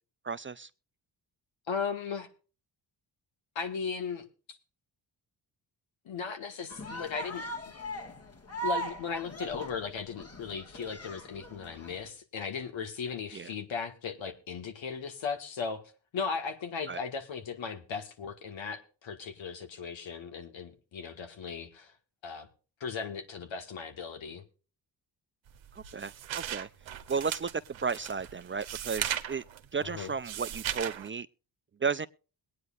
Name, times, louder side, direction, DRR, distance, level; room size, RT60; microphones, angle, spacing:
voice 1, 0.2-0.7 13.3-13.5 16.9-17.0 25.8-26.7 27.1-29.4 29.7-31.3 31.8-32.1, right 5 dB, 25° right, 0.4 m, -34 dB
voice 2, 1.7-2.3 3.5-4.6 6.0-7.5 8.6-15.8 16.1-21.9 22.2-22.5 22.8-24.4 29.8-30.1, left 6 dB, 75° left, 1.8 m, -37 dB
sound 1, 6.7-12.1, right 2 dB, 30° left, 1.7 m, -40 dB
sound 2, 25.5-31.1, right 10 dB, 75° right, 1.0 m, -37 dB
22.0 x 9.5 x 2.5 m
cardioid pair, 60°, 46 cm